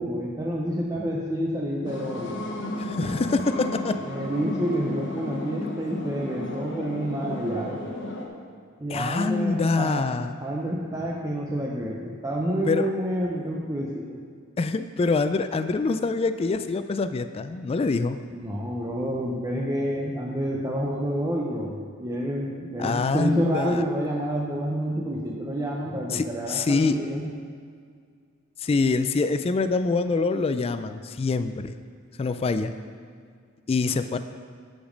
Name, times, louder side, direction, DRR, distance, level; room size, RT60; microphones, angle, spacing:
voice 1, 0.0-2.4 4.0-7.9 8.8-10.0 10.4-14.2 18.3-27.3 33.8-34.0, equal, 15° right, -2 dB, 0.7 m, -29 dB
sound 1, 1.8-8.3, left 1 dB, 60° left, 1.2 m, -34 dB
voice 2, 2.8-4.0 8.9-10.4 12.7-12.9 14.6-18.2 22.8-23.9 26.1-27.0 28.6-31.8 32.2-32.7 33.7-34.2, left 3 dB, 30° left, 10 dB, 0.3 m, -25 dB
12.0 x 5.2 x 5.1 m, 2.1 s
head